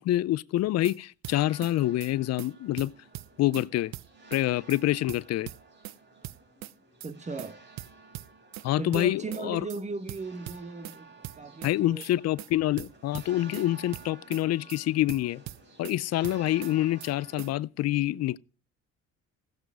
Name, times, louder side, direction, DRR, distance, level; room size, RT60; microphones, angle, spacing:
voice 1, 0.0-2.9 3.4-3.9 4.3-5.5 8.6-9.6 11.6-15.4 15.8-18.4, left 15 dB, 60° left, 0.5 m, -27 dB
sound 1, 0.6-1.0 1.2-1.7 2.0-2.1 2.4-2.5 2.8-3.7 3.9-4.4 4.7-4.8 5.1-6.0 6.2-6.7 7.0-7.1 7.4-7.5 7.8-8.7 8.9-9.4 9.7-9.8 10.1-11.0 11.2-11.7 12.0-12.1 12.4-12.5 12.8-13.7 13.9-14.4 14.7-14.8 15.1-16.0 16.2-16.7 17.0-17.1 17.4-17.5, right 15 dB, 70° right, 0.6 m, -41 dB
sound 2, 1.2-17.6, right 3 dB, 40° right, 4.6 m, -53 dB
voice 2, 7.0-7.6 8.8-12.0, right 3 dB, 25° right, 1.1 m, -37 dB
15.5 x 8.0 x 4.8 m
cardioid pair, 100°, 29 cm